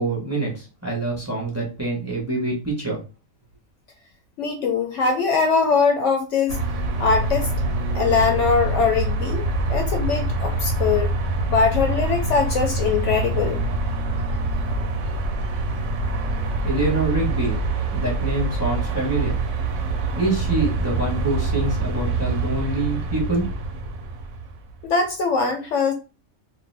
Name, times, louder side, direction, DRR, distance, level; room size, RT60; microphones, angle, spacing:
voice 1, 0.0-3.0 16.6-17.6 17.9-19.4 20.2-23.4, right 2 dB, 15° right, -2 dB, 0.9 m, -25 dB
voice 2, 4.4-6.6 7.0-7.5 7.9-11.1 11.5-13.6 24.8-25.9, left 5 dB, 70° left, 4 dB, 0.8 m, -21 dB
sound 1, 6.5-24.9, right 2 dB, 70° right, 0.9 m, -25 dB
2.6 x 2.2 x 3.2 m, 0.30 s
omnidirectional pair, 1.4 m